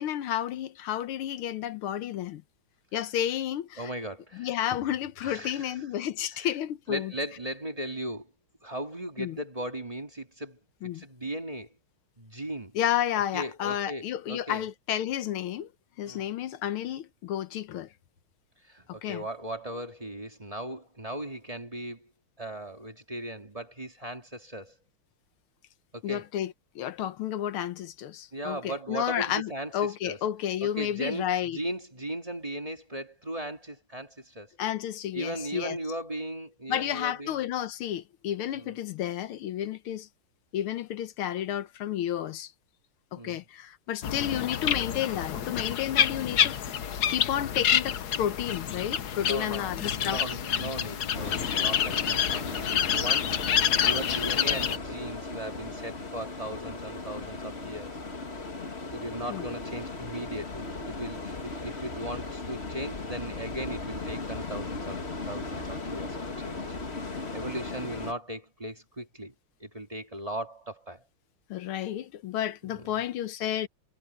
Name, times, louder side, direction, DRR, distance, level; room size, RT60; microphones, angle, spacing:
voice 1, 0.0-2.4 2.9-3.9 4.3-7.1 9.2-9.4 10.8-11.0 12.7-15.7 16.0-17.9 18.9-19.2 26.0-31.6 34.6-35.8 36.7-40.1 40.5-42.5 43.1-46.6 47.1-50.2 59.3-59.5 71.5-73.7, left 11 dB, 80° left, 1.7 m, -31 dB
voice 2, 3.8-4.5 5.2-5.7 6.3-6.5 6.9-8.3 8.6-11.7 12.2-12.8 13.3-14.7 16.0-16.3 18.6-22.1 22.4-24.8 25.9-26.3 28.3-30.2 30.6-34.6 35.1-37.4 38.5-38.8 43.1-43.4 49.2-58.0 58.9-66.8 67.1-69.3 69.6-71.0 72.6-73.0, right 1 dB, 15° right, 2.3 m, -38 dB
sound 1, 44.0-54.8, left 9 dB, 55° left, 1.3 m, -28 dB
sound 2, 51.1-68.1, left 3 dB, 30° left, 2.2 m, -37 dB
omnidirectional pair, 2.4 m